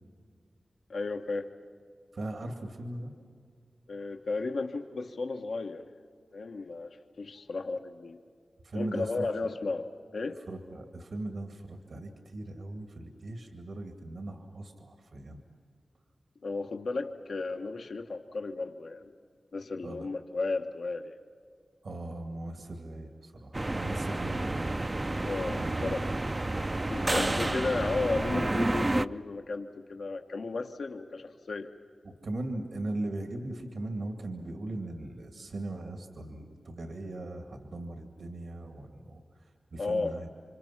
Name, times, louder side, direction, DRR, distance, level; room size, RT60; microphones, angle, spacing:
voice 1, 0.9-1.5 3.9-5.8 6.3-8.2 8.7-9.9 10.1-10.4 16.4-19.1 19.5-21.2 25.2-26.1 26.9-31.7 39.8-40.2, left 3 dB, 80° left, 5 dB, 1.0 m, -34 dB
voice 2, 2.1-3.1 8.6-9.3 10.5-15.4 19.8-20.1 21.8-25.1 25.4-26.3 27.0-27.8 32.0-40.3, right 2 dB, 75° right, 4 dB, 2.2 m, -39 dB
sound 1, 23.5-29.1, right 2 dB, 30° right, 0.5 m, -30 dB
29.0 x 25.5 x 5.8 m, 2.3 s
cardioid pair, 50°, 0 cm